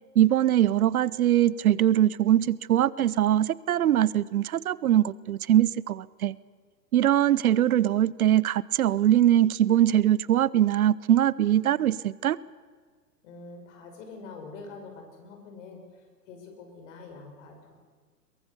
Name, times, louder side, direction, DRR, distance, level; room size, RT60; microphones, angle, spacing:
voice 1, 0.2-6.4 6.9-12.4, right 11 dB, 60° right, 21 dB, 0.8 m, -22 dB
voice 2, 13.2-17.7, left 4 dB, 45° left, 4 dB, 6.4 m, -45 dB
23.0 x 22.5 x 7.0 m, 1.5 s
hypercardioid pair, 120°, 49 cm